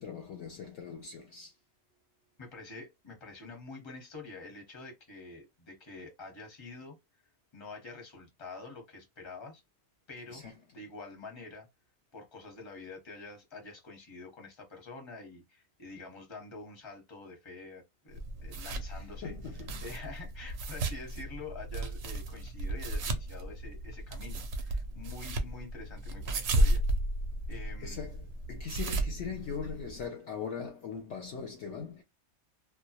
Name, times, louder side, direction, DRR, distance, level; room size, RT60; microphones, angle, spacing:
voice 1, 0.0-1.5 10.3-10.5 18.9-19.9 27.8-32.0, left 6 dB, 65° left, 0.8 m, -40 dB
voice 2, 2.4-7.0 7.5-9.6 10.1-10.4 10.7-11.7 12.1-26.8 27.5-28.0, left 3 dB, 25° left, 0.8 m, -47 dB
sound 1, 18.1-30.0, right 1 dB, 65° right, 0.7 m, -34 dB
2.3 x 2.1 x 2.7 m
omnidirectional pair, 1.5 m